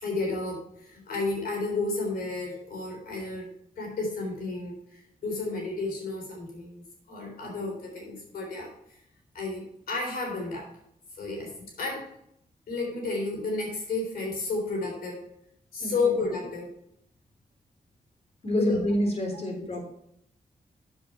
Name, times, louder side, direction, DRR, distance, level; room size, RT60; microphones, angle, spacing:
voice 1, 0.0-3.5 3.8-4.8 5.2-8.7 9.3-10.7 11.2-11.5 11.8-12.1 12.7-15.2 15.7-16.7 18.5-18.8 19.6-19.7, left 3 dB, 90° left, -1 dB, 3.6 m, -32 dB
voice 2, 15.8-16.1 18.4-19.8, left 1 dB, 45° left, 2 dB, 3.4 m, -27 dB
8.0 x 7.3 x 4.4 m, 0.74 s
cardioid pair, 60°, 15 cm